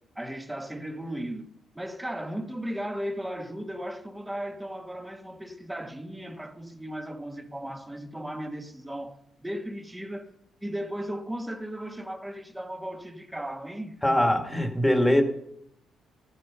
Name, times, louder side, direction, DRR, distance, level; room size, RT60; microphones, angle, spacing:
voice 1, 0.0-1.5 1.7-10.3 10.6-14.2, equal, 10° right, 1.5 m, -36 dB
voice 2, 14.0-15.2, left 1 dB, 5° left, 1.9 m, -22 dB
14.5 x 9.4 x 5.6 m
cardioid pair, 90°, 0 cm